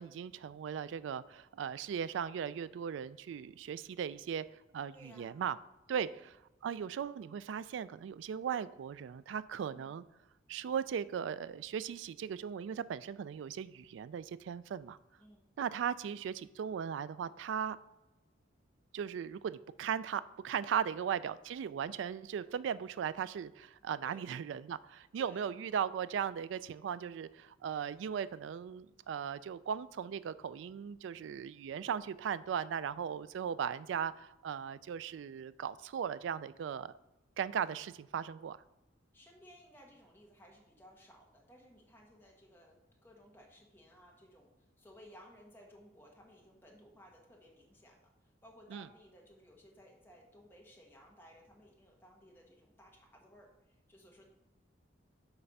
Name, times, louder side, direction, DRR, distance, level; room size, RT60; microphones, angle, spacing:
voice 1, 0.0-4.4 4.7-5.6 5.9-6.1 6.6-10.0 10.5-15.0 15.6-17.8 18.9-36.9 37.4-38.6 48.7-48.8, right 8 dB, 75° right, 16 dB, 0.3 m, -38 dB
voice 2, 4.9-5.4 5.9-6.1 9.7-9.9 15.2-15.5 24.0-24.3 25.2-25.4 39.1-54.3, equal, 10° left, -1 dB, 1.0 m, -59 dB
8.1 x 3.3 x 5.3 m, 0.98 s
head